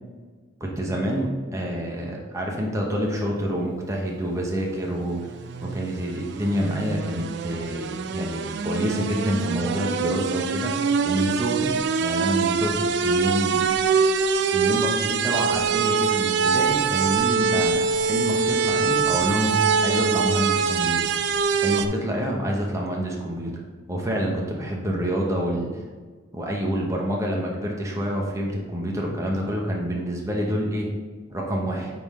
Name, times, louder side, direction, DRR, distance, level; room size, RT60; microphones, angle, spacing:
voice 1, 0.6-5.3 5.6-10.7 11.0-13.7 14.5-21.1 21.5-23.5 23.9-25.7 26.3-30.9 31.3-31.9, equal, 15° right, -2 dB, 0.9 m, -27 dB
sound 1, 5.1-21.9, right 5 dB, 55° right, 0.3 m, -24 dB
9.5 x 3.7 x 3.7 m, 1.4 s
head